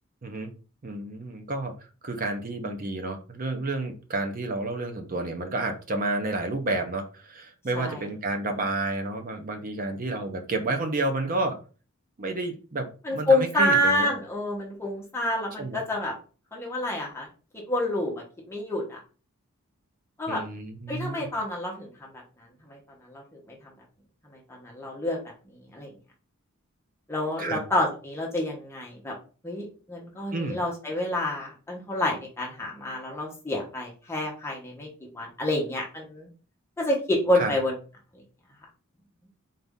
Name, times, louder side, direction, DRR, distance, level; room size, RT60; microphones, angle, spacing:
voice 1, 0.8-1.7 2.0-11.6 12.2-14.1 15.6-15.8 20.3-21.3 27.4-27.6 30.3-30.6 37.3-37.5, right 2 dB, 40° right, 5 dB, 0.6 m, -30 dB
voice 2, 7.7-8.0 13.0-16.1 16.5-17.3 17.5-19.0 20.2-20.4 20.9-22.2 22.7-22.8 23.1-23.6 24.3-25.2 25.5-25.9 27.1-29.1 29.4-34.9 35.1-36.3 36.8-37.8, left 1 dB, 10° left, -2 dB, 0.9 m, -28 dB
4.0 x 2.6 x 3.5 m, 0.36 s
head